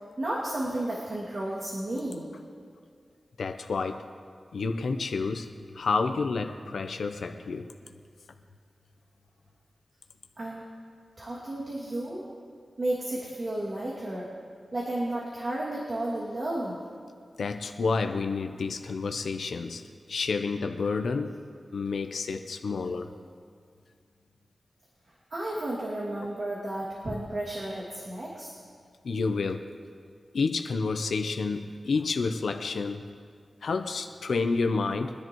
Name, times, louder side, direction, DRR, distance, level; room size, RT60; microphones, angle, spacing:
voice 1, 0.2-2.2 10.4-10.6 11.2-12.3 12.8-14.3 14.7-16.8 25.3-28.5, right 1 dB, 55° right, -5 dB, 2.4 m, -32 dB
voice 2, 3.4-4.0 4.5-5.5 5.7-7.7 17.4-19.8 20.1-21.3 21.7-23.1 29.0-29.7 30.3-33.0 33.6-35.1, left 4 dB, 85° left, 6 dB, 0.7 m, -29 dB
24.0 x 10.5 x 3.1 m, 2.1 s
wide cardioid pair, 70°, 0 cm